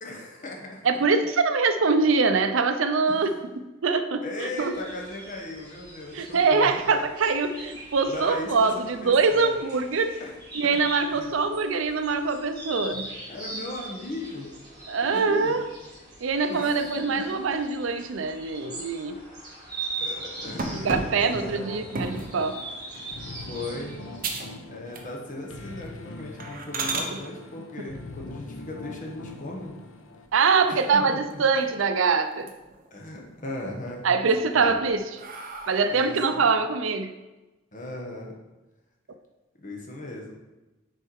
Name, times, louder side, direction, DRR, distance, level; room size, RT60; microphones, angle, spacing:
voice 1, 0.0-0.8 3.1-3.3 4.2-6.8 8.0-9.6 10.2-10.3 11.1-11.3 12.9-14.5 15.0-15.5 16.5-17.2 20.0-21.0 21.4-21.7 23.4-24.0 24.7-29.8 30.7-31.4 32.9-34.8 35.9-36.5 37.7-38.3 39.6-40.3, left 1 dB, 40° left, 0 dB, 1.2 m, -38 dB
voice 2, 0.8-4.7 6.1-10.1 10.5-13.0 14.9-15.7 16.2-19.2 20.7-22.6 27.8-27.9 30.3-32.5 34.0-35.2 35.7-37.1, right 4 dB, 75° right, 9 dB, 0.5 m, -24 dB
sound 1, 4.5-24.2, right 2 dB, 20° right, 2.3 m, -41 dB
sound 2, 20.6-22.4 22.9-23.3 23.7-23.8 24.2-24.6 24.9-25.4 25.7-25.9 26.4-27.1 29.1-29.8 30.2-30.3 30.7-30.8 31.1-31.9 32.3-32.9 33.3-33.9 34.5-36.2, right 3 dB, 45° right, 0.8 m, -34 dB
sound 3, 20.7-30.3, left 2 dB, 75° left, 0.7 m, -43 dB
6.6 x 4.7 x 4.6 m, 1.1 s
head